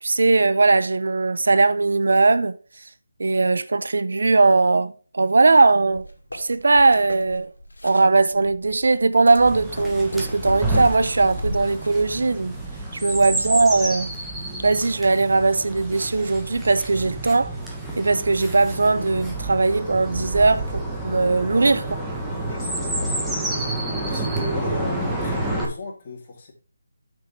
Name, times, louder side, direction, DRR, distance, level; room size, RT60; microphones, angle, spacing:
voice 1, 0.0-2.6 3.2-6.1 6.3-7.5 7.8-12.6 13.0-14.1 14.6-17.5 18.0-21.8, right 3 dB, 65° right, 0.6 m, -19 dB
sound 1, 5.8-12.4, left 1 dB, 80° left, 2.0 m, -36 dB
Chirp tweet, 9.4-25.6, right 1 dB, 5° right, 1.4 m, -29 dB
voice 2, 13.1-13.6 21.5-21.7 22.5-23.3 24.0-26.5, left 2 dB, 35° left, 3.0 m, -35 dB
8.7 x 6.2 x 3.3 m
figure-of-eight pair, 155°, 0 cm